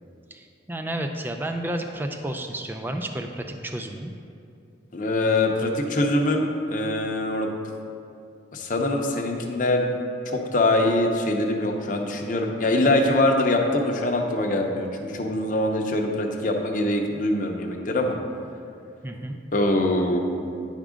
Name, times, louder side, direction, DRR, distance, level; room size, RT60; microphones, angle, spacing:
voice 1, 0.3-4.1 19.0-19.4, right 1 dB, 10° right, 5 dB, 0.4 m, -31 dB
voice 2, 4.9-7.5 8.5-9.9 10.3-18.1 19.5-20.2, left 1 dB, 45° left, 2 dB, 0.7 m, -23 dB
10.0 x 3.7 x 5.0 m, 2.6 s
head